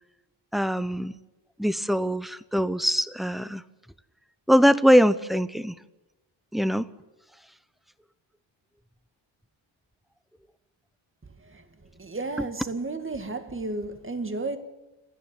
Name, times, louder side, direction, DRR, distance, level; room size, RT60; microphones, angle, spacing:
voice 1, 0.5-1.2 1.6-3.6 4.5-5.7 6.5-6.9 12.4-12.5, equal, ahead, 0.7 m, -22 dB
voice 2, 12.0-14.6, right 3 dB, 25° right, 2.0 m, -32 dB
29.0 x 10.0 x 9.2 m
wide cardioid pair, 115°, 47 cm